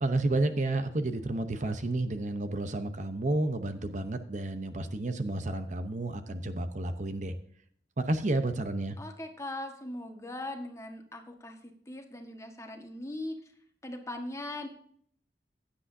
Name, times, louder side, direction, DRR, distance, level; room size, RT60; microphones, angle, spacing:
voice 1, 0.0-7.3 8.0-9.0, right 2 dB, 45° right, 9 dB, 0.8 m, -31 dB
voice 2, 9.0-13.4 13.8-14.7, left 1 dB, 15° left, 4 dB, 1.5 m, -40 dB
16.0 x 10.0 x 2.7 m, 0.62 s
head